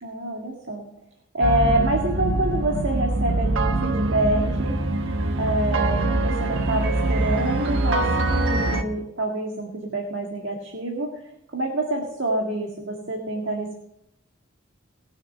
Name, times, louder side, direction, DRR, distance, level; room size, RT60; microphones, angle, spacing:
voice 1, 0.0-0.8 1.3-4.8 5.4-8.0 8.3-11.1 11.5-13.8, right 1 dB, 65° right, 0 dB, 1.9 m, -26 dB
sound 1, 1.4-8.8, right 2 dB, 80° right, 1.2 m, -23 dB
19.5 x 6.7 x 6.7 m, 0.80 s
head